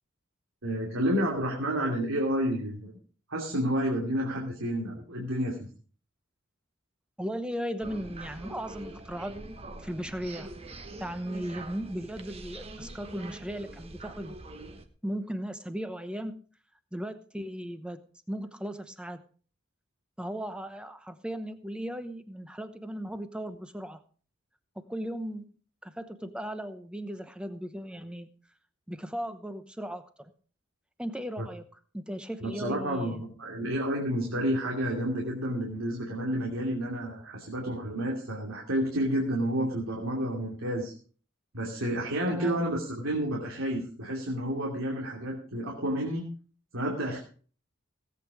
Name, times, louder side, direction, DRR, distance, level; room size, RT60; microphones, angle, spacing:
voice 1, 0.6-2.9 3.3-5.7 31.4-31.5 32.4-40.9 41.5-46.3 46.7-47.2, equal, 85° right, -1 dB, 2.8 m, -30 dB
voice 2, 7.2-9.4 9.8-10.5 11.0-14.4 15.0-16.4 16.9-18.0 18.3-19.2 20.2-24.0 24.8-25.5 25.8-28.3 28.9-30.3 31.0-31.7 31.9-33.2 42.3-42.7, equal, 5° right, 10 dB, 0.9 m, -36 dB
sound 1, 7.8-14.9, right 2 dB, 30° right, 1.2 m, -44 dB
17.5 x 8.4 x 4.9 m, 0.42 s
head